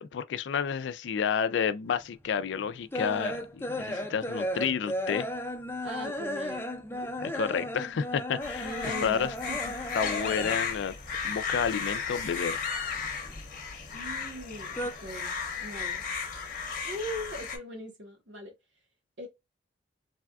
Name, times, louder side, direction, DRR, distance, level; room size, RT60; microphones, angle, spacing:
voice 1, 0.0-5.3 7.2-8.7 9.0-9.3 9.9-10.9 11.2-12.6, left 7 dB, 75° left, 0.3 m, -30 dB
sound 1, 2.1-10.8 11.1-12.3 12.6-14.0 14.3-14.9, equal, 10° left, 0.4 m, -35 dB
voice 2, 3.9-4.2 5.8-7.1 8.6-9.7 13.9-16.0 16.8-18.5 19.2-19.3, equal, 85° right, 1.1 m, -40 dB
sound 2, 8.4-17.6, left 5 dB, 45° left, 0.7 m, -35 dB
3.3 x 2.2 x 2.3 m
head